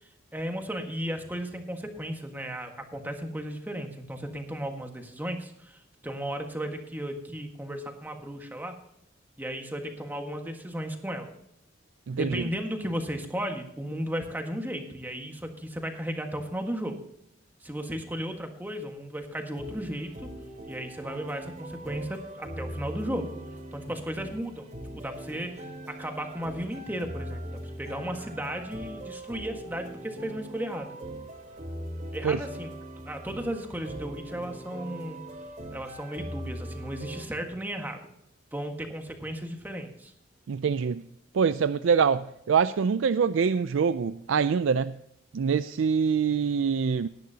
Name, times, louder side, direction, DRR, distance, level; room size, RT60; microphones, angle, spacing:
voice 1, 0.3-8.8 9.4-11.3 12.1-17.0 17.6-20.3 20.7-23.3 23.7-24.7 24.9-30.9 32.1-32.7 33.0-35.2 35.7-38.1 38.5-40.1, equal, 10° right, 4 dB, 1.5 m, -35 dB
voice 2, 12.1-12.4 32.2-32.4 40.5-41.0 41.3-45.0 45.3-47.1, right 6 dB, 75° right, 13 dB, 0.4 m, -25 dB
sound 1, 19.6-37.2, right 1 dB, 40° right, 2.8 m, -41 dB
18.0 x 10.5 x 2.8 m, 0.74 s
head